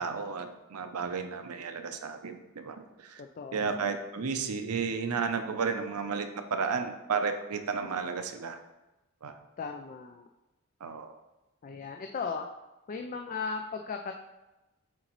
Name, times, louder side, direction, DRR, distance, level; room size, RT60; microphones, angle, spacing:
voice 1, 0.0-3.2 3.5-8.6 9.2-9.3 10.8-11.1, right 5 dB, 85° right, 7 dB, 0.6 m, -33 dB
voice 2, 3.2-3.9 9.6-10.3 11.6-12.5 12.9-14.1, left 5 dB, 35° left, 5 dB, 0.3 m, -37 dB
7.8 x 3.9 x 3.1 m, 1.0 s
head